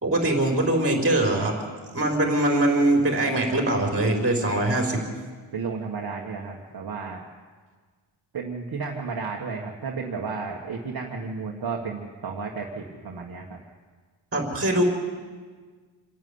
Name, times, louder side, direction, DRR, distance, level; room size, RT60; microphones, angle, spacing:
voice 1, 0.0-1.5 1.9-5.0 14.3-14.8, right 1 dB, 30° right, 2 dB, 4.4 m, -22 dB
voice 2, 5.5-7.2 8.3-13.6, right 5 dB, 50° right, 0 dB, 1.7 m, -33 dB
27.0 x 11.0 x 9.7 m, 1.5 s
wide cardioid pair, 145°, 46 cm